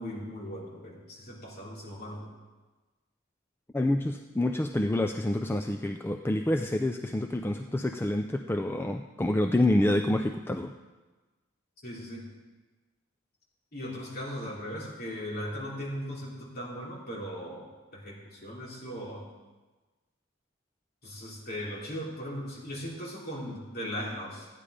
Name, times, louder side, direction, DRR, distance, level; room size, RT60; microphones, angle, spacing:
voice 1, 0.0-2.3 11.8-12.2 13.7-19.3 21.0-24.5, equal, 45° left, -4 dB, 3.4 m, -38 dB
voice 2, 3.7-10.7, left 1 dB, 10° left, 5 dB, 0.4 m, -27 dB
14.0 x 9.9 x 5.0 m, 1.2 s
head